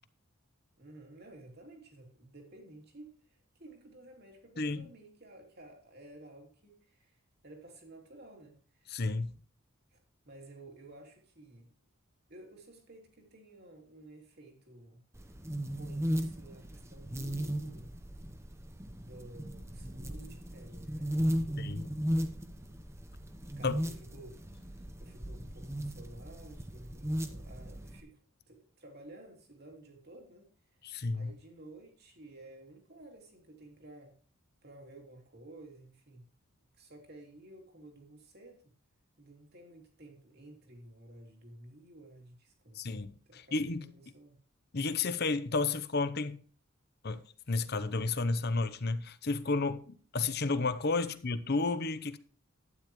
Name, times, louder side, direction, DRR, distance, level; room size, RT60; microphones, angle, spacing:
voice 1, 0.8-8.9 9.9-10.0 10.2-11.8 12.3-15.0 15.7-18.0 19.0-21.8 23.4-30.8 31.1-34.2 34.6-36.3 36.7-38.7 39.2-44.4 51.0-51.1, right 1 dB, 50° right, 2.9 m, -53 dB
voice 2, 8.9-9.4 21.6-21.9 23.6-23.7 30.8-31.3 42.8-43.9 44.7-46.4 47.0-47.2 47.5-52.2, left 3 dB, 50° left, 0.8 m, -32 dB
sound 1, 15.1-28.0, equal, 10° right, 0.9 m, -36 dB
12.0 x 9.7 x 3.1 m
head